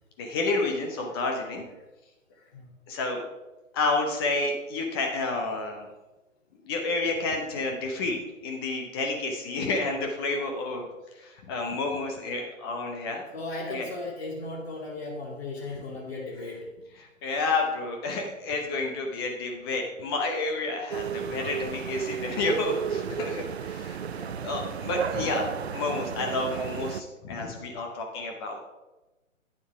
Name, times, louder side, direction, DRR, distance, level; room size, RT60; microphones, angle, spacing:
voice 1, 0.2-1.6 2.9-3.2 3.7-5.9 6.6-13.2 13.7-13.9 17.0-28.6, left 3 dB, 20° left, 2 dB, 0.8 m, -30 dB
voice 2, 2.4-2.7 13.3-16.7 17.2-17.4 24.1-24.4, left 2 dB, 50° left, -2 dB, 2.6 m, -37 dB
sound 1, 20.9-27.0, right 7 dB, 55° right, 0.5 m, -33 dB
9.0 x 6.9 x 4.7 m, 1.1 s
figure-of-eight pair, 135°, 40 cm